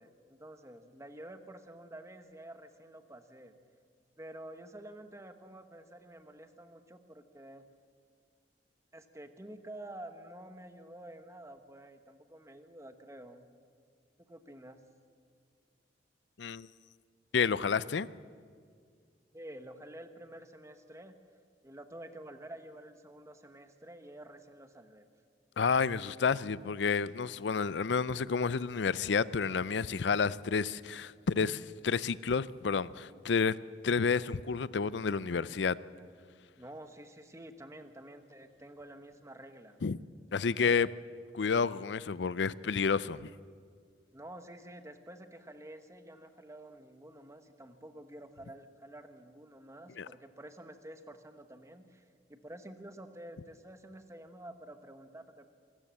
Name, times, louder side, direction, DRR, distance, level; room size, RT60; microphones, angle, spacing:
voice 1, 0.0-3.5 4.2-7.7 8.9-13.5 14.2-14.8 19.3-21.2 21.6-25.1 36.6-39.8 40.4-41.0 44.1-52.0 52.3-55.5, right 1 dB, 15° right, 1.2 m, -49 dB
voice 2, 16.4-16.7 17.3-18.1 25.6-33.6 33.8-35.8 39.8-40.0 40.3-40.9 41.3-43.3 50.0-50.1, left 5 dB, 75° left, 0.5 m, -30 dB
25.0 x 14.0 x 7.6 m
head